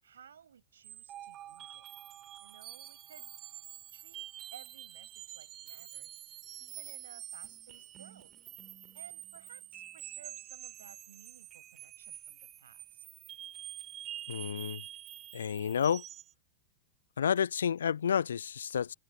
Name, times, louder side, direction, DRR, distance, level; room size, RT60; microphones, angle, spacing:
voice 1, 0.0-1.9 2.4-3.3 3.9-8.3 8.9-13.0, right 8 dB, 65° right, 7.8 m, -57 dB
sound 1, 0.8-16.3, right 12 dB, 30° right, 4.9 m, -47 dB
voice 2, 14.3-14.8 15.3-16.0 17.2-18.9, left 8 dB, 65° left, 0.5 m, -30 dB
figure-of-eight pair, 90°, 0 cm